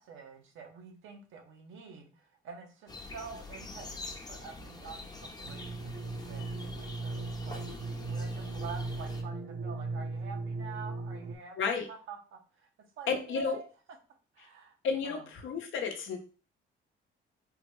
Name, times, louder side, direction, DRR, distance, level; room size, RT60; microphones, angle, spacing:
voice 1, 0.0-12.7 13.0-13.7 14.3-14.8 15.0-15.3, right 5 dB, 80° right, 3 dB, 0.8 m, -47 dB
sound 1, 2.9-9.2, left 3 dB, 20° left, 0.6 m, -45 dB
sound 2, 5.4-11.4, right 3 dB, 40° right, 0.4 m, -37 dB
voice 2, 11.6-11.9 13.1-13.6 14.8-16.2, left 5 dB, 75° left, 5 dB, 0.7 m, -32 dB
3.6 x 2.2 x 3.0 m, 0.36 s
cardioid pair, 90°, 20 cm